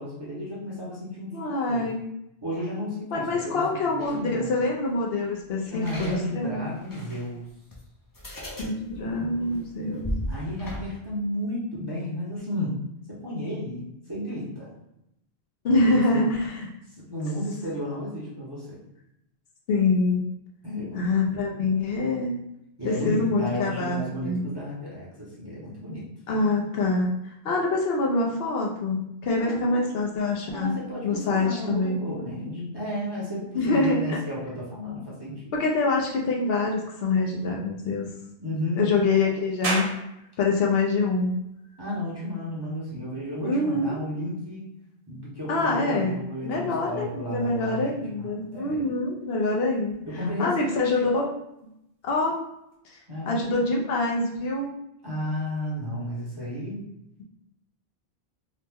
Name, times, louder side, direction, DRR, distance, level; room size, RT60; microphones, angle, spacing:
voice 1, 0.0-1.9 2.4-4.6 5.6-7.5 10.3-12.7 13.2-13.8 14.1-14.7 15.8-16.2 17.1-18.8 20.6-21.1 22.8-26.0 29.3-29.9 30.5-35.5 38.4-39.0 41.8-44.6 45.1-48.8 50.1-50.8 53.1-53.4 55.0-56.8, left 1 dB, 25° right, -7 dB, 0.7 m, -33 dB
voice 2, 1.3-2.0 3.1-6.6 8.6-10.1 15.6-16.7 19.7-20.2 20.9-22.4 22.8-24.4 26.3-30.8 31.0-32.0 33.5-34.0 35.5-38.1 38.8-40.0 40.4-41.4 43.4-44.0 45.5-46.1 46.4-49.9 50.4-51.3 52.0-52.4 52.8-53.0 53.3-54.7, left 3 dB, 70° left, -1 dB, 0.8 m, -25 dB
sound 1, 4.0-4.3 5.8-7.3 7.7-7.8 8.1-10.8, equal, 25° left, 0.4 m, -36 dB
sound 2, 39.6-52.7, right 2 dB, 75° right, 1.0 m, -42 dB
2.9 x 2.1 x 3.3 m, 0.81 s
omnidirectional pair, 1.1 m